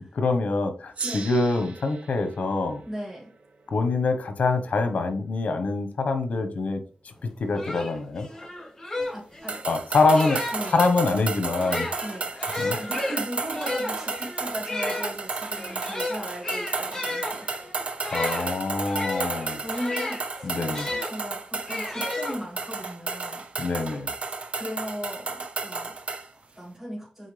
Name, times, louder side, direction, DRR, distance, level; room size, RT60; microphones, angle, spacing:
voice 1, 0.1-2.8 3.7-6.8 7.2-8.3 9.7-10.4 10.7-11.9 12.6-12.8 18.0-19.6 20.4-20.9 23.6-24.1, left 3 dB, 80° left, 1.3 m, -25 dB
Gong, 0.9-5.7, right 4 dB, 75° right, 1.6 m, -41 dB
voice 2, 2.8-3.3 8.9-9.6 10.5-10.7 12.0-12.5 12.8-17.5 19.6-20.5 20.9-23.4 24.6-27.3, equal, 10° right, 2.8 m, -37 dB
sound 1, 7.2-7.3 7.5-10.8 11.5-21.1 21.7-22.8, left 2 dB, 20° left, 2.7 m, -33 dB
sound 2, 9.5-26.3, right 4 dB, 60° right, 0.9 m, -33 dB
8.3 x 4.5 x 3.5 m
wide cardioid pair, 95°, 2 cm